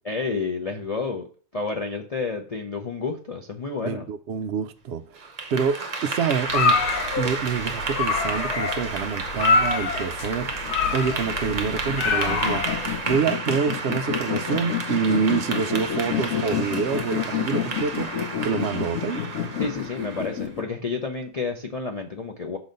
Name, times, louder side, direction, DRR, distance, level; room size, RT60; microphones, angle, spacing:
voice 1, 0.0-1.3 1.5-4.1 19.6-22.6, left 4 dB, 50° left, 0.4 m, -30 dB
voice 2, 3.8-6.8 7.2-12.6 13.1-19.2, right 6 dB, 70° right, 0.6 m, -27 dB
Clapping / Applause, 5.2-20.4, right 4 dB, 35° right, 0.8 m, -32 dB
sound 1, 6.5-13.2, left 4 dB, 85° left, 1.2 m, -26 dB
sound 2, 10.5-20.6, left 9 dB, 65° left, 1.1 m, -30 dB
6.1 x 4.0 x 5.1 m
omnidirectional pair, 1.6 m